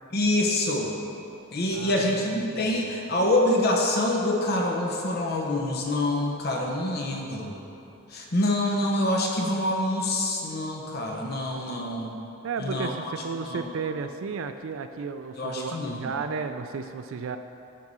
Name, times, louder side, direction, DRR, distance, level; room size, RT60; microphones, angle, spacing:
voice 1, 0.1-0.9 1.5-7.6 8.1-12.2 12.6-12.9 13.5-13.7 15.4-16.1, left 1 dB, 45° left, -1 dB, 0.9 m, -26 dB
voice 2, 1.7-3.0 12.4-17.4, right 5 dB, 65° right, 8 dB, 0.4 m, -34 dB
12.0 x 4.7 x 5.5 m, 2.9 s
head